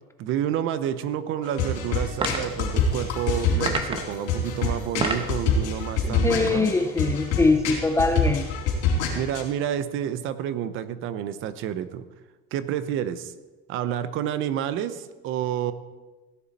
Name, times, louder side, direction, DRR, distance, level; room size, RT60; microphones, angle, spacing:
voice 1, 0.2-6.7 9.1-12.0 12.5-13.3 13.7-15.7, right 10 dB, 45° right, 13 dB, 0.7 m, -29 dB
sound 1, 1.4-9.4, left 4 dB, 60° left, 4.1 m, -26 dB
sound 2, 2.2-2.6 3.6-4.2 4.8-5.4, right 3 dB, 20° right, 0.9 m, -28 dB
voice 2, 6.0-8.5, left 3 dB, 10° left, 6 dB, 0.4 m, -22 dB
16.5 x 10.5 x 4.2 m, 1.2 s
cardioid pair, 170°, 29 cm